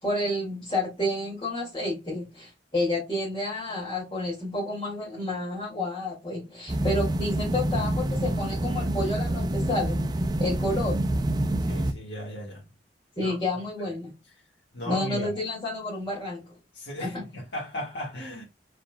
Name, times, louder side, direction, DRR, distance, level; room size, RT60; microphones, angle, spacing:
voice 1, 0.0-10.0 10.4-11.0 13.2-14.1 14.8-16.5 17.0-17.2, left 1 dB, 25° left, 2.3 m, -30 dB
sound 1, 6.7-11.9, right 1 dB, 20° right, 0.5 m, -27 dB
voice 2, 11.6-12.6 13.2-13.4 13.8-13.9 14.7-15.3 16.7-18.4, equal, 70° left, 1.8 m, -36 dB
5.3 x 4.1 x 2.3 m
head